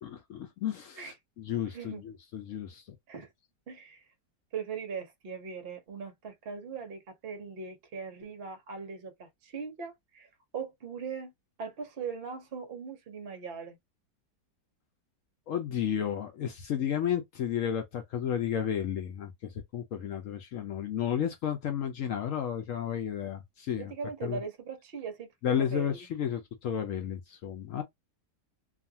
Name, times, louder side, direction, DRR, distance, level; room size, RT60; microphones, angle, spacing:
voice 1, 0.0-2.8 15.5-23.9 24.2-24.4 25.4-27.8, left 9 dB, 70° left, 0.7 m, -32 dB
voice 2, 1.7-2.0 3.1-3.3 3.7-4.1 4.5-11.3 11.6-13.8 23.8-25.9, right 6 dB, 50° right, 0.8 m, -40 dB
2.6 x 2.4 x 2.7 m
omnidirectional pair, 1.8 m